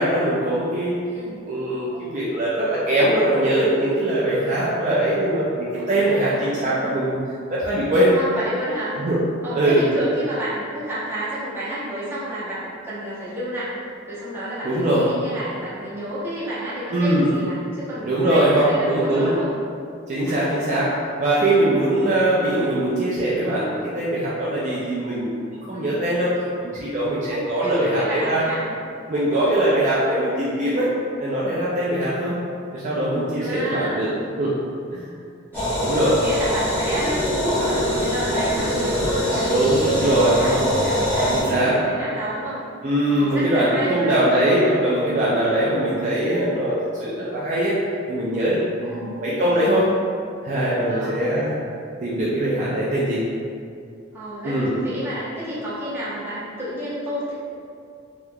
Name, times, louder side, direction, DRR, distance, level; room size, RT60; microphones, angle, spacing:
voice 1, 0.0-1.0 1.5-7.2 7.5-8.1 9.0-9.2 9.5-9.9 14.6-15.1 16.9-17.3 18.0-19.3 20.1-28.4 29.1-30.9 31.2-32.3 32.7-34.1 34.4-34.6 34.9-35.1 35.8-36.2 39.4-40.6 41.3-41.8 42.8-47.8 48.1-49.9 50.4-51.5 52.0-53.2 54.4-54.8, right 1 dB, 40° right, -7 dB, 0.4 m, -21 dB
voice 2, 5.7-6.6 8.1-8.9 9.4-13.7 14.1-19.5 20.2-20.4 25.7-26.0 27.3-28.7 29.5-29.6 33.4-34.3 35.5-42.6 43.1-44.3 48.8-49.2 50.9-51.2 54.1-57.3, right 1 dB, 10° right, -10 dB, 0.8 m, -30 dB
sound 1, 35.5-41.4, equal, 10° left, 1.1 m, -23 dB
3.5 x 2.9 x 2.2 m, 2.4 s
head